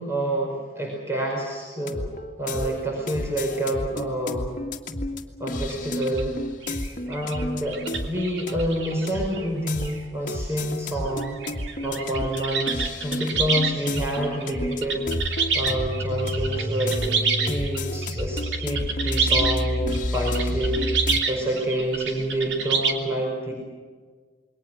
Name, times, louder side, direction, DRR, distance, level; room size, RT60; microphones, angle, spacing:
voice 1, 0.0-2.0 2.4-4.5 5.4-6.3 7.0-11.4 11.8-23.5, right 1 dB, 15° right, -1 dB, 5.1 m, -28 dB
sound 1, 1.8-21.2, left 1 dB, 50° left, 2.0 m, -30 dB
sound 2, 5.7-5.8 6.0-6.2 6.6-9.5 9.8-10.0 10.6-10.7 11.1-22.9, right 5 dB, 80° right, 3.1 m, -28 dB
28.0 x 22.5 x 6.3 m, 1.5 s
head